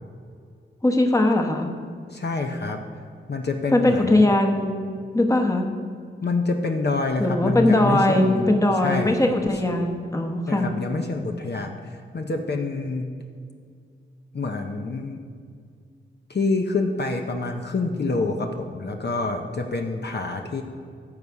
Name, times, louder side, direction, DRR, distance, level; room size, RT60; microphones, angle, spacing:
voice 1, 0.8-1.7 3.7-4.7 5.1-5.7 7.2-10.7, left 1 dB, 15° left, 3 dB, 1.1 m, -20 dB
voice 2, 2.1-2.8 3.3-4.3 6.2-9.3 10.5-13.1 14.3-15.2 16.3-20.6, left 3 dB, 55° left, 3 dB, 0.8 m, -27 dB
15.0 x 5.6 x 4.8 m, 2.2 s
wide cardioid pair, 85°, 21 cm